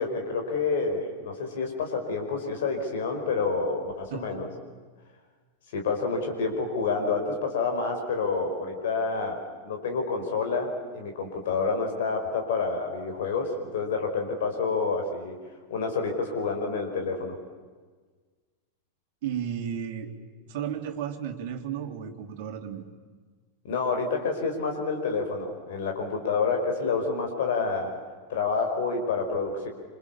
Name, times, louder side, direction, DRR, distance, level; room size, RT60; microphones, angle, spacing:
voice 1, 0.0-4.5 5.7-15.4 15.7-17.3 23.6-28.0 28.3-29.7, left 4 dB, 55° left, 3 dB, 5.1 m, -28 dB
voice 2, 4.1-4.4 19.2-20.2 20.5-22.8, right 8 dB, 50° right, 5 dB, 3.0 m, -33 dB
27.5 x 26.5 x 7.2 m, 1.4 s
figure-of-eight pair, 90°, 0 cm